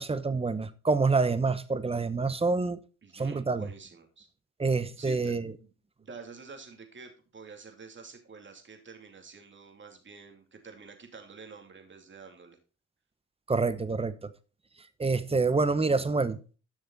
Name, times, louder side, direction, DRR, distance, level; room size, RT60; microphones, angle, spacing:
voice 1, 0.0-2.8 3.1-3.7 4.6-5.5 13.5-14.3 15.0-16.6, right 4 dB, 20° right, 0.9 m, -27 dB
voice 2, 3.0-4.3 5.0-5.3 5.6-5.7 6.0-12.6, right 5 dB, 40° right, 2.6 m, -48 dB
11.5 x 6.2 x 3.9 m
cardioid pair, 90°, 30 cm